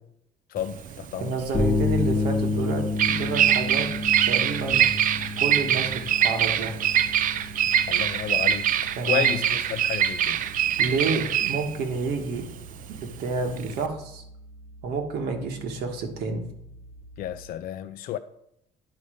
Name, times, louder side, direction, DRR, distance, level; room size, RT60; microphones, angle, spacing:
voice 1, 0.5-1.3 7.9-8.7 9.0-10.4 17.2-18.2, left 11 dB, 60° left, 0.4 m, -31 dB
Bird vocalization bird call bird song, 0.6-13.9, right 10 dB, 55° right, 0.5 m, -24 dB
voice 2, 1.2-3.9 4.3-4.8 5.4-6.8 9.0-9.3 10.8-12.5 13.0-14.2 14.8-16.5, right 4 dB, 75° right, 1.4 m, -29 dB
sound 1, 1.5-17.5, left 3 dB, 40° left, 1.1 m, -32 dB
9.6 x 3.9 x 5.0 m
cardioid pair, 110°, 17 cm